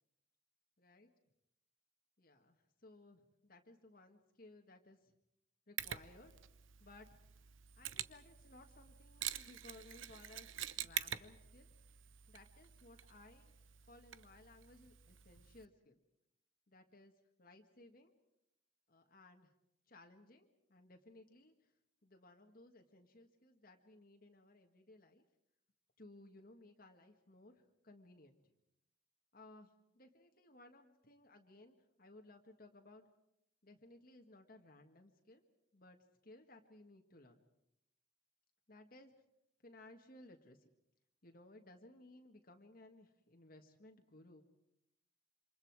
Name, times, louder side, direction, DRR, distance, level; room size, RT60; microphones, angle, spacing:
voice 1, 0.8-1.1 2.2-5.1 5.7-6.4 6.8-7.2 7.8-11.7 12.3-13.5 13.9-16.0 16.7-17.1 17.4-18.1 18.9-19.5 19.9-21.7 22.0-25.2 26.0-28.5 29.3-33.1 33.6-35.4 35.7-37.4 38.7-39.1 39.6-40.7 41.2-44.4, left 2 dB, 45° left, 3 dB, 1.8 m, -60 dB
Mechanisms, 5.8-15.6, right 11 dB, 85° right, 0.9 m, -47 dB
28.0 x 26.5 x 4.8 m, 0.81 s
head